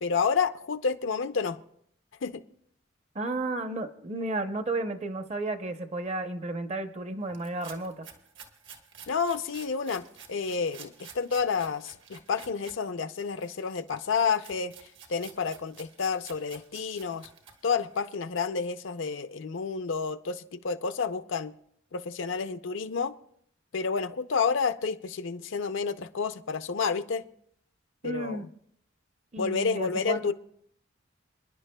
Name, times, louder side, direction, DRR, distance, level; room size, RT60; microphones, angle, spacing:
voice 1, 0.0-1.6 2.2-2.4 9.1-14.7 15.1-17.3 17.6-21.5 21.9-23.1 23.7-27.3 28.0-28.5 29.4-30.3, left 5 dB, 70° left, 10 dB, 0.5 m, -30 dB
voice 2, 3.1-8.1 28.0-28.5 29.3-30.3, right 2 dB, 35° right, 9 dB, 0.7 m, -33 dB
sound 1, 7.3-12.8 13.1-18.1, right 6 dB, 65° right, 1.3 m, -51 dB
28.5 x 10.5 x 2.2 m, 0.68 s
head